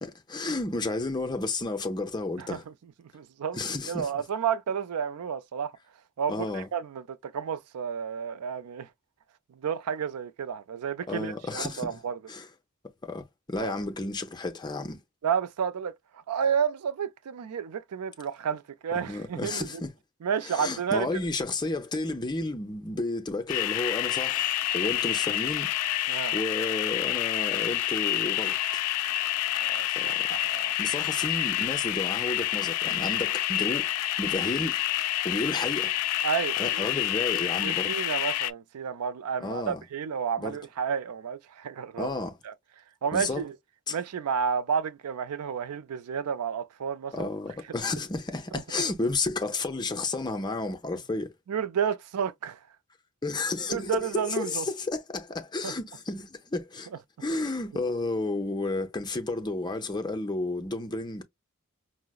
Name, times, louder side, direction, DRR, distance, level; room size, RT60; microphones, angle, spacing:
voice 1, 0.0-2.6 3.5-4.1 6.3-6.7 11.1-12.0 12.3-12.5 13.0-15.0 19.0-19.9 20.5-25.7 26.0-28.8 30.0-30.4 30.8-33.9 34.2-34.8 35.2-35.9 36.6-37.9 39.4-39.8 40.4-40.6 42.0-42.4 43.1-43.4 43.9-44.0 47.1-51.3 53.2-56.9 57.2-61.2, left 2 dB, 20° left, 0.5 m, -32 dB
voice 2, 3.1-3.6 3.9-5.7 6.2-8.9 9.5-12.2 13.6-13.7 15.2-19.8 20.2-21.1 26.1-26.4 29.5-30.8 36.2-36.9 37.6-42.1 42.4-42.5 43.0-43.6 43.9-47.3 48.5-48.6 51.5-52.6 53.7-54.7 55.6-55.7, right 7 dB, 85° right, 0.4 m, -31 dB
sound 1, 23.5-38.5, left 14 dB, 90° left, 0.3 m, -28 dB
4.7 x 2.0 x 2.3 m
head